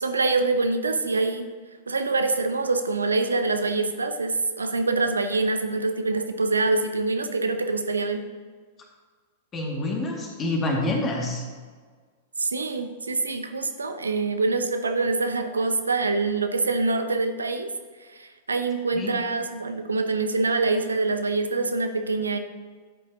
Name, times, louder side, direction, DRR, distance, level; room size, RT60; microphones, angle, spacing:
voice 1, 0.0-1.5 1.9-8.3 12.4-17.7 18.0-22.4, right 3 dB, 80° right, 7 dB, 0.7 m, -25 dB
voice 2, 9.5-11.4 18.9-19.1, left 2 dB, 25° left, 0 dB, 2.1 m, -27 dB
12.5 x 8.2 x 2.9 m, 1.5 s
figure-of-eight pair, 95°, 0 cm